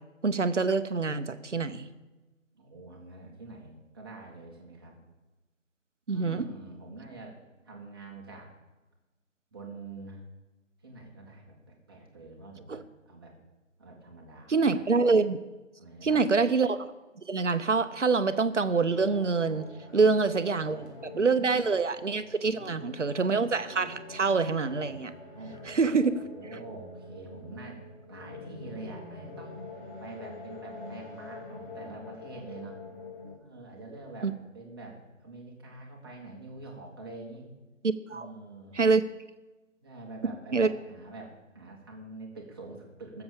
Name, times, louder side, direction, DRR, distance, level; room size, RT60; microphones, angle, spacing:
voice 1, 0.2-1.9 6.1-6.4 12.7-12.8 14.5-15.4 16.0-16.9 17.3-19.7 19.9-25.1 25.7-26.2 34.2-34.3 37.8-38.3 38.8-39.0 40.5-40.7, right 4 dB, 65° right, 11 dB, 0.9 m, -26 dB
voice 2, 2.6-5.0 6.1-7.4 7.6-8.5 9.5-10.2 10.8-13.3 13.8-14.8 15.8-16.3 19.9-20.1 20.5-21.5 22.4-23.2 25.3-26.0 26.2-27.8 28.1-29.6 30.0-32.8 33.4-37.5 38.1-38.8 39.8-43.2, right 2 dB, 20° right, -1 dB, 1.6 m, -46 dB
sound 1, 18.9-33.3, left 3 dB, 40° left, 3.2 m, -45 dB
15.5 x 7.1 x 6.7 m, 1.2 s
figure-of-eight pair, 155°, 39 cm